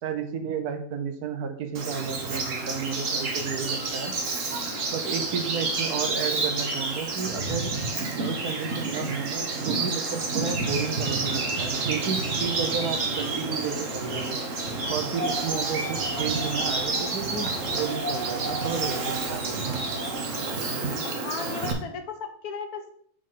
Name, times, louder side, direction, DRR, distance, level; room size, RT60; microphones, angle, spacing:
voice 1, 0.0-4.1 4.9-7.7 8.1-14.4 14.9-19.9, right 6 dB, 90° right, 7 dB, 1.4 m, -32 dB
Bird vocalization bird call bird song, 1.7-21.7, right 3 dB, 60° right, 1.4 m, -29 dB
Wind, 15.1-20.2, right 1 dB, 25° right, 0.4 m, -36 dB
voice 2, 21.0-22.9, left 6 dB, 85° left, 6 dB, 1.4 m, -36 dB
6.7 x 5.4 x 3.9 m, 0.63 s
omnidirectional pair, 1.6 m